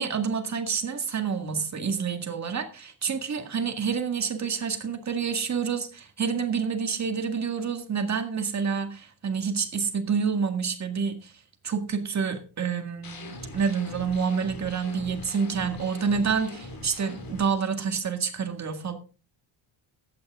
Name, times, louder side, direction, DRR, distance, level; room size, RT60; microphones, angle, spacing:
voice 1, 0.0-11.3 11.6-18.9, right 6 dB, 35° right, 6 dB, 1.9 m, -28 dB
sound 1, 13.0-17.4, left 1 dB, 45° left, 4.2 m, -42 dB
15.5 x 8.6 x 3.7 m, 0.36 s
cardioid pair, 130°, 49 cm